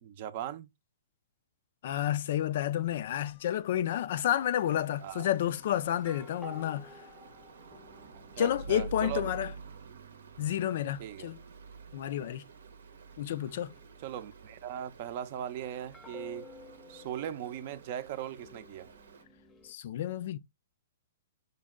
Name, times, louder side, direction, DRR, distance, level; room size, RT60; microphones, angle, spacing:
voice 1, 0.0-0.7 5.0-5.3 8.4-9.3 11.0-11.3 14.0-16.5 16.9-18.9, right 11 dB, 50° right, 0.5 m, -39 dB
voice 2, 1.8-6.9 8.4-9.5 10.4-11.4 11.9-12.4 13.2-13.7 19.6-20.4, left 11 dB, 60° left, 0.3 m, -30 dB
sound 1, 2.4-4.3 5.2-19.7, left 3 dB, 15° left, 0.6 m, -55 dB
Stream, 4.4-19.2, right 5 dB, 80° right, 0.7 m, -49 dB
5.2 x 2.2 x 3.5 m
hypercardioid pair, 135°, 0 cm